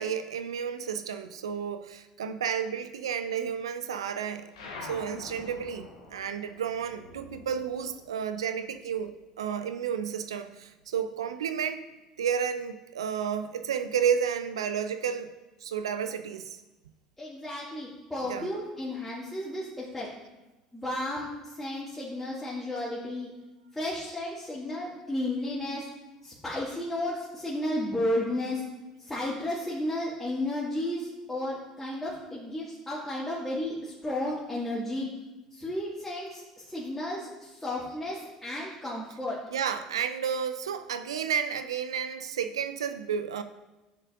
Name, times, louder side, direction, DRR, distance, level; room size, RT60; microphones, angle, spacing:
voice 1, 0.0-4.5 4.8-9.1 9.4-11.9 12.2-15.3 15.6-16.6 18.2-18.5 39.5-43.4, right 7 dB, 80° right, 10 dB, 0.4 m, -31 dB
sound 1, 4.5-9.4 9.7-11.1, left 3 dB, 75° left, 1.1 m, -47 dB
voice 2, 17.2-20.1 20.7-23.3 23.7-25.8 26.2-28.6 29.0-35.1 35.5-39.4, left 1 dB, 10° left, -8 dB, 2.0 m, -33 dB
9.6 x 6.4 x 2.5 m, 1.1 s
hypercardioid pair, 65°, 3 cm